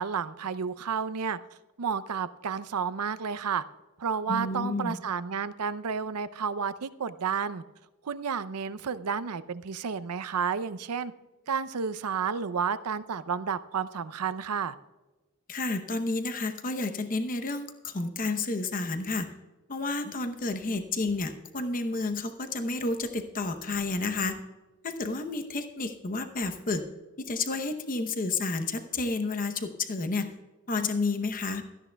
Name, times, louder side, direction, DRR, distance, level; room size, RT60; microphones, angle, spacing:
voice 1, 0.0-1.4 1.8-3.6 4.0-7.6 8.0-11.1 11.5-14.8, right 6 dB, 85° right, 14 dB, 0.6 m, -31 dB
voice 2, 4.3-5.0 15.5-19.3 19.7-24.4 24.8-26.8 27.2-30.3 30.7-31.6, left 3 dB, 40° left, 7 dB, 0.8 m, -30 dB
17.0 x 13.5 x 2.3 m, 1.2 s
head